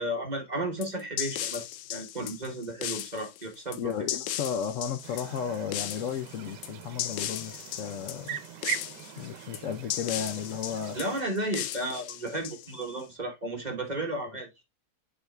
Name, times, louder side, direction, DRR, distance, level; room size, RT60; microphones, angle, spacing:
voice 1, 0.0-4.1 10.9-14.5, right 1 dB, 30° right, 1.2 m, -33 dB
sound 1, 0.8-13.0, left 12 dB, 90° left, 1.2 m, -37 dB
voice 2, 3.8-8.4 9.2-11.0 14.3-14.4, left 8 dB, 65° left, 0.8 m, -34 dB
sound 2, 5.0-11.2, right 10 dB, 85° right, 1.3 m, -41 dB
10.5 x 4.1 x 2.2 m
omnidirectional pair, 1.8 m